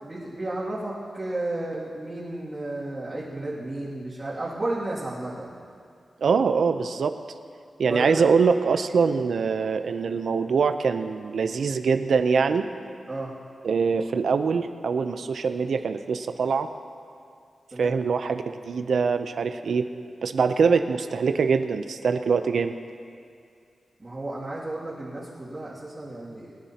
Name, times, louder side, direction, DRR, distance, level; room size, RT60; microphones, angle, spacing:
voice 1, 0.0-5.5 7.9-8.2 13.1-13.3 17.7-18.0 24.0-26.6, right 2 dB, 35° right, -10 dB, 2.4 m, -33 dB
voice 2, 6.2-7.2 7.8-12.7 13.6-16.7 17.8-19.9 20.2-22.7, right 5 dB, 80° right, 9 dB, 0.6 m, -23 dB
22.5 x 10.0 x 2.9 m, 2.3 s
wide cardioid pair, 80°, 0 cm